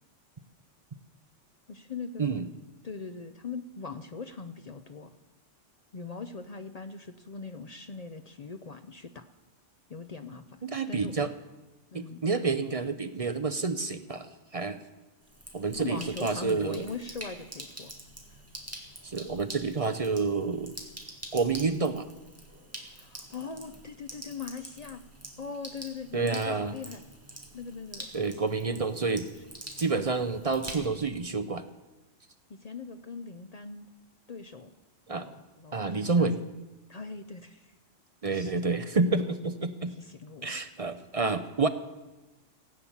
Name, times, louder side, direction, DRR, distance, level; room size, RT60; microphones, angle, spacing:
voice 1, 1.7-2.5 2.8-5.1 5.9-9.3 9.9-10.6 10.9-11.2 11.9-12.2 15.8-17.9 18.3-18.4 23.0-25.0 25.4-27.0 27.5-28.1 28.4-28.6 32.5-33.9 34.3-34.7 35.1-36.3 36.9-37.7 38.2-38.5 39.9-40.5, left 4 dB, 45° left, 9 dB, 0.5 m, -41 dB
voice 2, 10.6-11.3 11.9-14.8 15.5-16.9 19.0-20.7 21.3-22.1 26.1-26.7 28.1-29.3 29.8-31.6 35.1-35.3 35.7-36.4 38.2-39.9 40.4-41.7, right 4 dB, 40° right, 10 dB, 0.6 m, -29 dB
Sink (filling or washing), 15.2-31.2, right 1 dB, 10° right, 2.0 m, -46 dB
16.0 x 8.6 x 7.2 m, 1.1 s
omnidirectional pair, 1.3 m